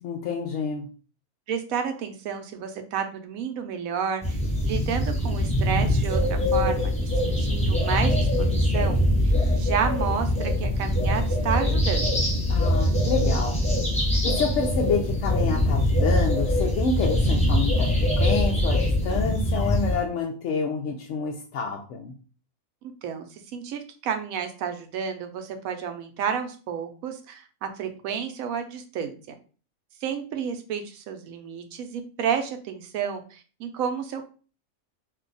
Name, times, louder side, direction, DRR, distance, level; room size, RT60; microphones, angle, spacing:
voice 1, 0.0-0.9 12.5-13.6 14.2-22.1, left 5 dB, 65° left, 0 dB, 0.8 m, -28 dB
voice 2, 1.5-9.0 9.2-12.1 23.0-29.4 30.0-34.3, right 7 dB, 80° right, 6 dB, 1.0 m, -31 dB
sound 1, 4.2-20.0, left 1 dB, 10° left, 0.5 m, -23 dB
2.7 x 2.3 x 3.8 m, 0.37 s
omnidirectional pair, 1.5 m